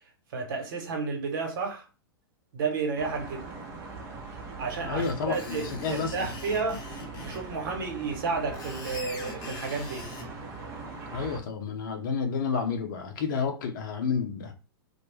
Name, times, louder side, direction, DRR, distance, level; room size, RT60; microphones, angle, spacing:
voice 1, 0.3-1.9 2.5-3.5 4.6-6.8 7.2-10.1, right 4 dB, 60° right, 1.0 m, -32 dB
sound 1, 3.0-11.4, right 3 dB, 25° right, 0.7 m, -41 dB
voice 2, 4.8-6.3 11.1-14.5, left 5 dB, 55° left, 0.7 m, -30 dB
Screech, 5.0-7.4 8.3-10.3, left 3 dB, 30° left, 0.8 m, -42 dB
2.3 x 2.1 x 3.2 m
hypercardioid pair, 105°, 12 cm